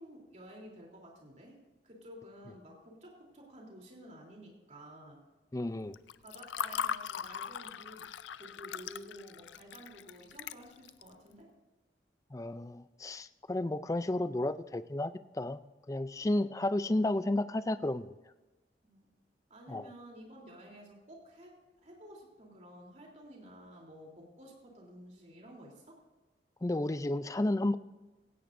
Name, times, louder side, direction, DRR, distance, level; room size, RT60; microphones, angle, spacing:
voice 1, 0.0-1.5 1.8-5.2 6.2-8.1 8.4-11.5 18.8-19.1 19.5-26.0, equal, 40° right, -1 dB, 3.3 m, -52 dB
voice 2, 5.5-5.9 12.3-15.6 15.9-18.1 19.7-19.9 26.6-27.8, left 1 dB, 20° left, 13 dB, 0.4 m, -32 dB
Water / Fill (with liquid), 5.9-11.1, left 8 dB, 85° left, 0.4 m, -39 dB
16.5 x 16.0 x 2.6 m, 1.2 s
head